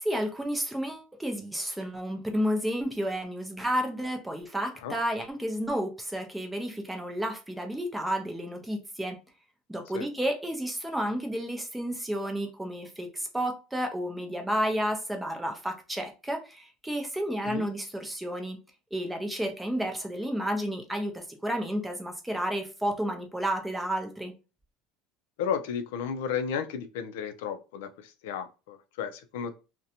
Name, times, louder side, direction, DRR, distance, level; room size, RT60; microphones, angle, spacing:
voice 1, 0.0-9.2 9.7-18.6 18.9-24.3, equal, 5° right, 0.4 m, -31 dB
voice 2, 25.4-29.5, left 7 dB, 90° left, 0.3 m, -33 dB
2.5 x 2.1 x 2.7 m
cardioid pair, 170°, 0 cm